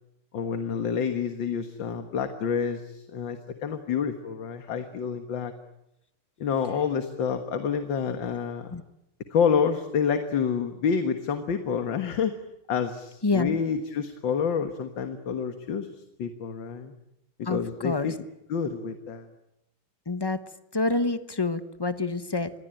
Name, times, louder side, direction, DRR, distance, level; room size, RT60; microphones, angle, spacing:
voice 1, 0.3-5.5 6.4-8.7 9.3-12.4 12.7-15.9 16.2-16.9 17.4-18.2 18.5-19.3, left 6 dB, 65° left, 8 dB, 2.2 m, -28 dB
voice 2, 13.2-13.6 17.5-18.1 20.1-20.4 20.7-22.5, left 3 dB, 25° left, 11 dB, 0.5 m, -27 dB
27.0 x 22.0 x 9.0 m, 0.86 s
omnidirectional pair, 2.3 m